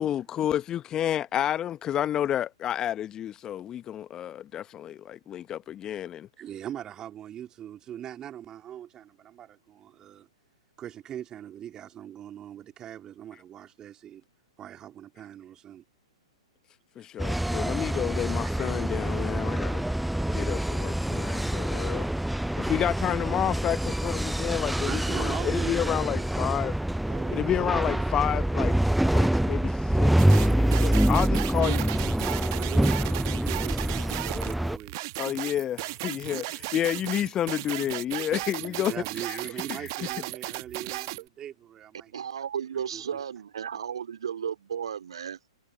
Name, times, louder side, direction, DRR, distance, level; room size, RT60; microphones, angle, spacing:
voice 1, 0.0-6.3 17.0-19.9 20.3-22.1 22.6-26.8 27.3-28.8 29.1-31.9 35.2-38.9 39.3-39.4 39.7-39.9, left 11 dB, 20° left, 1.0 m, -30 dB
voice 2, 6.4-10.3 10.8-14.2 14.6-15.8 17.9-18.0 18.5-18.7 24.8-26.3 27.0-28.1 32.5-35.4 36.3-36.5 38.6-42.1 42.7-43.2, right 10 dB, 20° right, 3.0 m, -41 dB
sound 1, 17.2-34.8, right 1 dB, ahead, 0.5 m, -26 dB
sound 2, 30.2-41.2, right 22 dB, 40° right, 1.2 m, -35 dB
voice 3, 42.1-45.4, right 8 dB, 65° right, 3.3 m, -34 dB
figure-of-eight pair, 115°, 3 cm